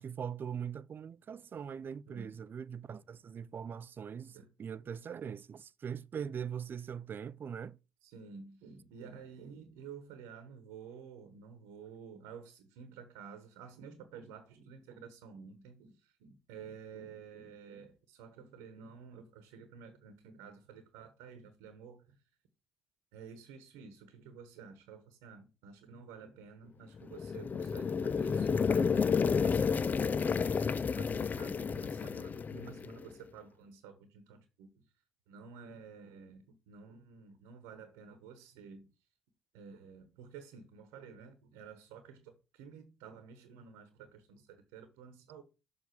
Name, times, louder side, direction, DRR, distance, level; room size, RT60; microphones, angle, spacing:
voice 1, 0.0-7.8, right 7 dB, 50° right, 0.4 m, -41 dB
voice 2, 2.0-2.4 4.3-4.5 8.0-22.2 23.1-34.8 35.3-38.9 39.5-45.4, right 6 dB, 90° right, 1.1 m, -51 dB
sound 1, 27.0-33.0, left 6 dB, 40° left, 0.4 m, -31 dB
7.0 x 3.6 x 5.9 m
supercardioid pair, 60°, 5 cm